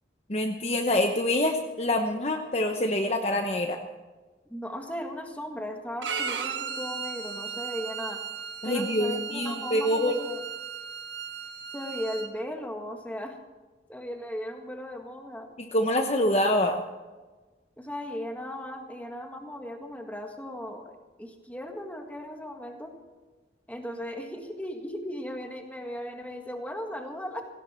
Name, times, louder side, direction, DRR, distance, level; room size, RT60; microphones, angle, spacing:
voice 1, 0.3-3.8 8.6-10.2 15.7-16.8, left 1 dB, 35° left, 4 dB, 1.0 m, -25 dB
voice 2, 4.5-8.2 8.6-10.4 11.7-13.4 13.9-15.5 17.8-20.9 21.2-22.9 23.7-27.4, equal, 10° left, 3 dB, 1.7 m, -37 dB
Bowed string instrument, 6.0-12.3, right 6 dB, 80° right, 1.3 m, -36 dB
17.5 x 17.0 x 4.5 m, 1.3 s
head